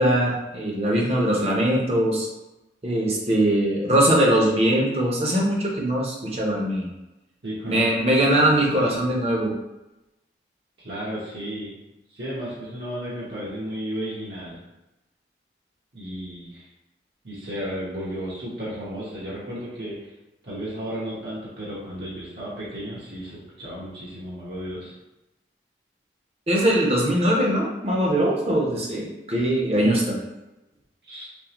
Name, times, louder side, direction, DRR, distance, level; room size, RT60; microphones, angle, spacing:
voice 1, 0.0-2.3 2.8-6.9 7.7-9.5 26.5-30.2, right 1 dB, 35° right, -2 dB, 0.7 m, -21 dB
voice 2, 7.4-9.1 10.8-11.8 12.1-14.6 15.9-16.6 17.2-20.0 20.4-24.9 31.1-31.3, equal, 65° right, -8 dB, 1.0 m, -34 dB
3.6 x 3.2 x 2.9 m, 0.98 s
head